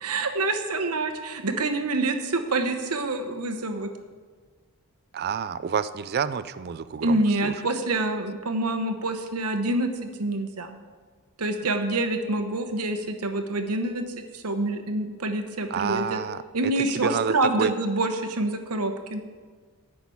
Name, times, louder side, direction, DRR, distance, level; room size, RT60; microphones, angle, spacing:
voice 1, 0.0-3.9 7.0-10.7 11.4-14.0 14.3-16.2 16.5-19.2, right 2 dB, 80° right, 7 dB, 1.1 m, -27 dB
voice 2, 5.1-7.5 15.7-16.4 16.9-17.7, right 7 dB, 45° right, 15 dB, 0.4 m, -29 dB
9.5 x 6.1 x 8.5 m, 1.5 s
head